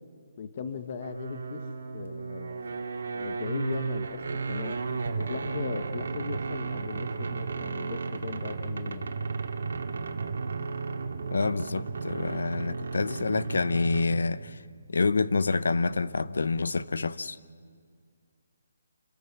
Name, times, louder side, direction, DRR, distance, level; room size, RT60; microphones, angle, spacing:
voice 1, 0.4-1.6 1.9-2.6 3.1-4.2 4.5-4.8 5.2-9.2, left 5 dB, 30° left, 1.0 m, -38 dB
sound 1, 1.0-14.4, right 4 dB, 65° right, 2.0 m, -34 dB
voice 2, 11.3-14.6 14.9-17.4, left 4 dB, 90° left, 0.8 m, -27 dB
27.5 x 22.0 x 5.9 m
hypercardioid pair, 180°, 0 cm